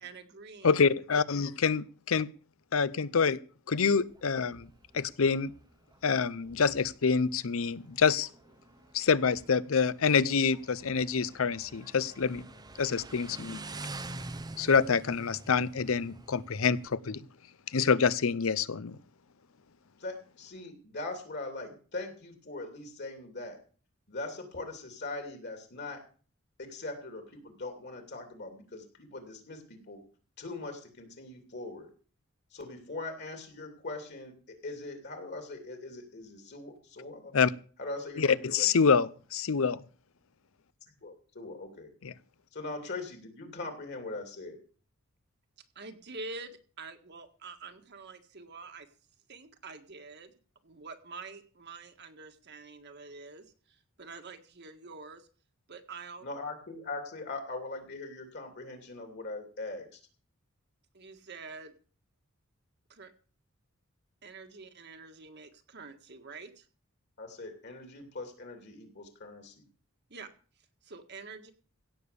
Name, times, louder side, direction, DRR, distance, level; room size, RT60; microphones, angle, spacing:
voice 1, 0.0-0.8 45.7-48.9 49.3-50.3 50.6-55.3 55.7-56.2 60.9-61.7 62.9-63.1 64.2-66.6 70.1-70.3 70.8-71.5, right 4 dB, 50° right, 1.7 m, -46 dB
voice 2, 0.6-2.3 2.7-3.4 3.7-4.7 4.9-5.5 6.0-8.3 8.9-12.4 12.8-13.6 14.6-17.2 17.7-19.0 37.3-37.5 38.2-39.8 42.0-42.1, left 5 dB, 70° left, 0.6 m, -26 dB
Motorcycle, 3.9-16.9, right 2 dB, 20° right, 0.6 m, -47 dB
voice 3, 20.0-23.6 24.1-26.0 26.6-30.0 30.4-31.9 32.5-37.3 37.8-38.7 41.0-41.9 42.5-44.6 56.2-60.0 67.2-69.6, left 2 dB, 50° left, 2.8 m, -41 dB
16.5 x 7.0 x 6.8 m
head